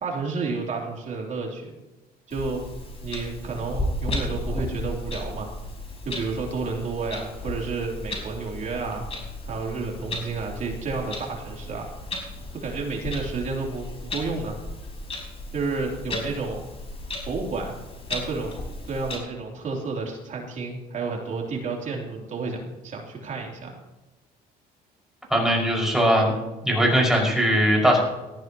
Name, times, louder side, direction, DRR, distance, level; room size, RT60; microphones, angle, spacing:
voice 1, 0.0-1.7 2.3-2.6 3.0-5.5 6.0-9.0 9.4-11.9 12.5-14.6 15.5-16.6 17.3-17.8 18.1-18.5 18.9-23.7, right 4 dB, 45° right, 0 dB, 3.4 m, -31 dB
Clock, 2.3-19.2, left 1 dB, 35° left, 4.8 m, -35 dB
voice 2, 25.3-26.3 26.6-28.0, equal, 5° right, -2 dB, 5.8 m, -20 dB
18.5 x 14.0 x 3.0 m, 1.1 s
cardioid pair, 110°, 17 cm